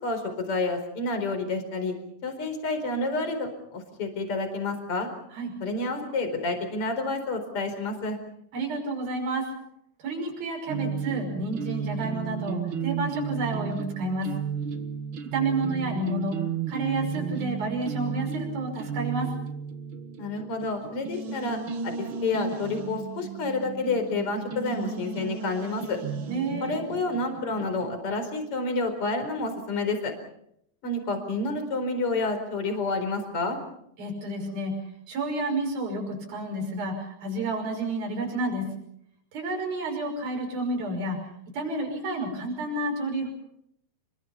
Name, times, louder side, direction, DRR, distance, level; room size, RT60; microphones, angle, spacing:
voice 1, 0.0-1.9 2.2-5.1 5.6-8.2 20.2-26.0 26.6-30.1 30.8-33.6, left 3 dB, 35° left, 7 dB, 5.2 m, -29 dB
voice 2, 8.5-9.5 10.0-14.3 15.3-16.4 16.7-19.3 26.3-26.9 34.0-34.7 35.1-38.6 39.3-41.2 41.5-43.3, right 2 dB, 70° right, 2 dB, 7.6 m, -30 dB
sound 1, 10.7-27.9, right 6 dB, 55° right, 1.4 m, -34 dB
30.0 x 22.5 x 5.8 m, 0.73 s
omnidirectional pair, 4.4 m